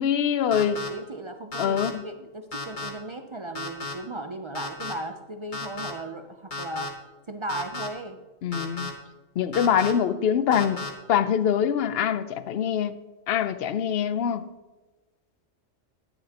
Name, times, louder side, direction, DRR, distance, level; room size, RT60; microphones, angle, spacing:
voice 1, 0.0-0.8 1.6-2.0 8.4-8.9 9.4-10.8 11.1-12.9 13.3-14.5, left 8 dB, 60° left, 0.7 m, -24 dB
sound 1, 0.5-0.9 1.5-1.9 2.5-2.9 3.5-3.9 4.5-4.9 5.5-5.9 6.5-6.9 7.5-7.9 8.5-8.9 9.5-9.9 10.5-10.9, left 3 dB, 40° left, 1.4 m, -33 dB
voice 2, 0.6-6.9 7.3-8.2, right 1 dB, 45° right, 0.4 m, -36 dB
12.0 x 9.8 x 2.9 m
omnidirectional pair, 1.3 m